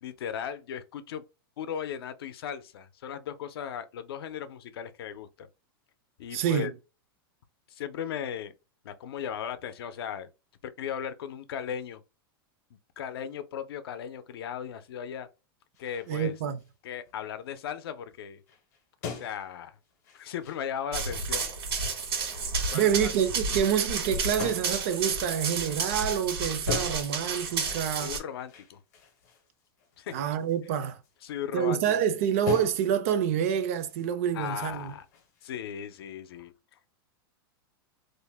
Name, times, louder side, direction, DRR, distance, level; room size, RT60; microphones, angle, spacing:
voice 1, 0.0-1.2 1.6-5.5 6.2-6.7 7.7-8.5 8.8-10.3 10.6-12.0 13.0-15.3 15.8-16.3 16.8-18.4 19.1-19.7 20.1-21.5 22.7-23.1 28.0-28.8 30.0-30.1 31.2-32.0 34.3-35.0 35.4-36.5, left 8 dB, 80° left, 0.5 m, -37 dB
voice 2, 6.3-6.7 16.1-16.6 22.7-28.1 30.1-31.0 31.5-34.9, right 9 dB, 35° right, 0.3 m, -27 dB
sound 1, 15.7-16.7 17.1-17.6 18.2-18.3 18.5-21.3 21.7-22.3 22.7-22.9 24.4-24.8 26.7-27.2 27.6-32.0 32.5-33.1 33.5-35.6, left 6 dB, 45° left, 0.7 m, -42 dB
Run, 20.9-28.2, right 4 dB, 85° right, 1.3 m, -31 dB
2.5 x 2.0 x 3.3 m
supercardioid pair, 175°, 13 cm